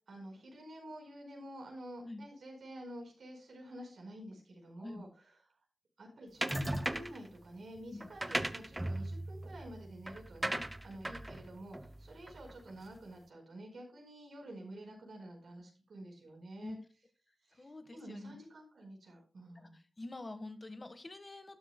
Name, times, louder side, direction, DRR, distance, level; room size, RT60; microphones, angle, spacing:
voice 1, 0.1-5.1 6.0-16.8 17.4-19.8, right 1 dB, 80° right, 1 dB, 4.8 m, -49 dB
sound 1, 6.4-7.3 8.0-12.7, right 1 dB, 15° right, 0.9 m, -38 dB
voice 2, 17.5-18.3 19.5-21.6, left 2 dB, 35° left, 9 dB, 1.5 m, -46 dB
12.5 x 10.0 x 2.2 m, 0.34 s
cardioid pair, 60°, 0 cm